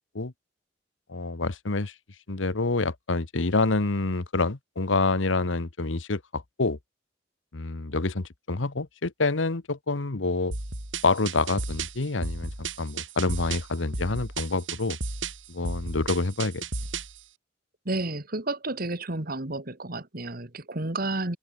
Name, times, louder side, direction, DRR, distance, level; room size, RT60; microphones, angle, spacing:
voice 1, 1.1-1.9 2.3-6.8 7.5-10.5 11.0-12.5 12.8-15.0 15.5-16.6, left 3 dB, 85° left, 1.2 m, -27 dB
sound 1, 10.5-17.2, right 3 dB, 90° right, 4.5 m, -34 dB
voice 2, 17.9-21.4, right 2 dB, 50° right, 2.3 m, -31 dB
head